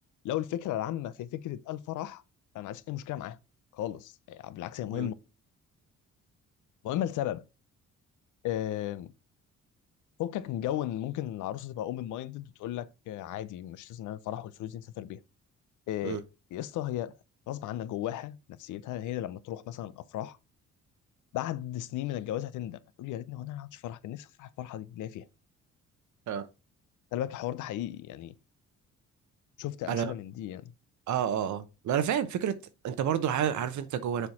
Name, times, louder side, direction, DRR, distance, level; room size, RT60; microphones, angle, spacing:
voice 1, 0.2-2.2 2.5-3.4 3.7-5.1 6.8-7.4 8.4-9.1 10.2-15.2 15.9-16.2 16.5-17.1 17.5-20.4 21.3-25.3 27.1-28.3 29.6-30.7, left 12 dB, 80° left, 0.6 m, -35 dB
voice 2, 31.1-32.5 32.8-34.3, right 9 dB, 70° right, 0.9 m, -29 dB
6.9 x 4.4 x 4.2 m
cardioid pair, 90°, 30 cm